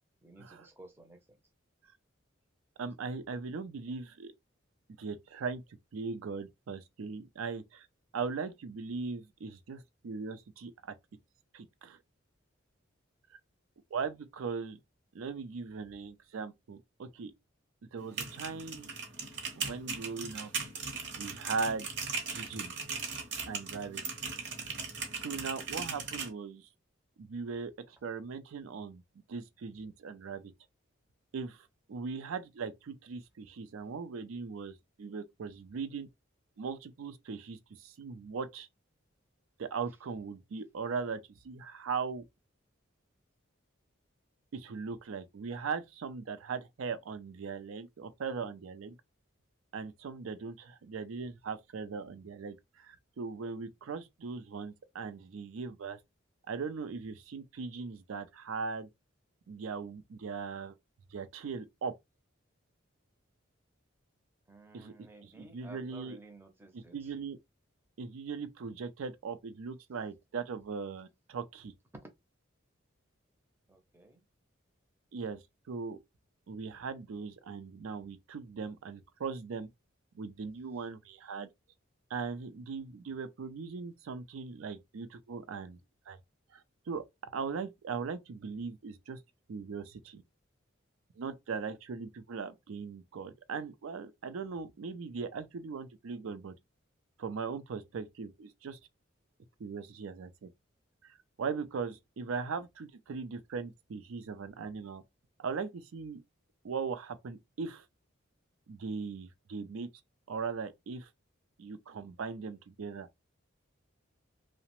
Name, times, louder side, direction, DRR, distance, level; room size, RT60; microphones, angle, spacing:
voice 1, 0.2-1.2 64.5-66.9 72.0-72.1 73.7-74.2, right 2 dB, 10° right, 0.5 m, -54 dB
voice 2, 2.8-4.3 5.0-5.6 5.9-7.9 8.1-10.9 11.5-12.0 13.9-14.8 15.1-17.3 17.9-18.9 19.5-20.5 21.1-21.9 22.3-22.7 23.5-24.0 25.2-26.7 27.2-29.0 29.3-30.5 31.3-36.1 36.6-38.7 39.6-42.2 44.5-49.0 49.7-56.0 56.5-58.9 59.5-60.8 61.1-61.9 64.7-64.9 65.2-66.2 66.7-67.4 68.0-71.7 75.1-76.0 76.5-79.7 80.1-81.5 82.1-85.8 86.1-86.2 86.5-89.2 89.5-90.2 91.2-96.5 97.2-98.8 99.6-100.5 101.0-105.0 105.4-106.2 106.6-107.9 108.7-109.9 110.3-111.1 111.6-113.1, right 5 dB, 85° right, 0.4 m, -39 dB
sound 1, 18.0-26.3, right 5 dB, 60° right, 0.8 m, -38 dB
2.8 x 2.1 x 2.9 m
head